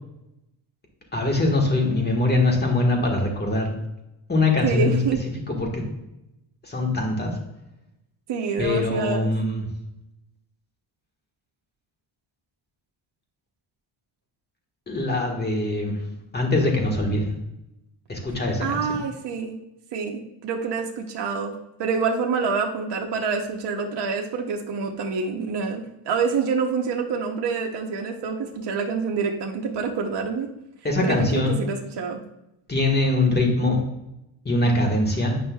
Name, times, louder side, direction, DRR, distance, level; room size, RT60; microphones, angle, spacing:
voice 1, 1.1-3.7 4.3-5.0 5.5-5.9 6.6-7.3 8.6-9.7 14.9-16.0 16.3-17.3 18.1-19.0 30.8-31.6 32.7-33.8 34.4-35.4, left 2 dB, 20° left, 1 dB, 1.4 m, -22 dB
voice 2, 4.6-5.2 8.3-9.3 18.6-19.6 19.9-21.5 21.8-30.5 31.0-32.2, right 5 dB, 60° right, 1 dB, 0.8 m, -27 dB
9.1 x 5.4 x 2.3 m, 0.89 s
cardioid pair, 125°, 46 cm